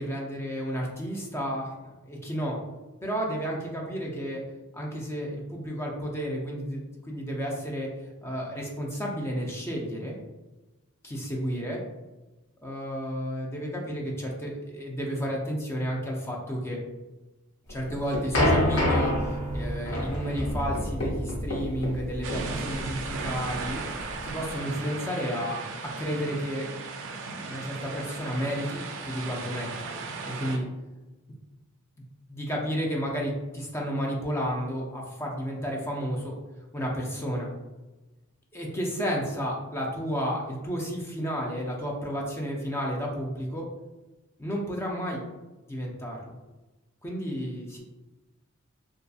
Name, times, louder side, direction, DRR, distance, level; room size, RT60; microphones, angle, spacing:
voice 1, 0.0-2.6 3.0-4.4 4.7-10.2 11.0-11.8 12.6-16.8 17.7-23.8 24.2-25.6 26.0-26.7 27.5-29.9 30.4-30.6 32.3-36.3 36.7-37.5 38.5-43.7 44.4-45.2 45.7-46.2 47.0-47.8, equal, 10° left, -1 dB, 0.4 m, -32 dB
sound 1, 17.7-24.5, left 1 dB, 90° left, 0.8 m, -28 dB
sound 2, 22.2-30.6, right 4 dB, 60° right, 0.3 m, -36 dB
2.6 x 2.3 x 2.3 m, 1.1 s
head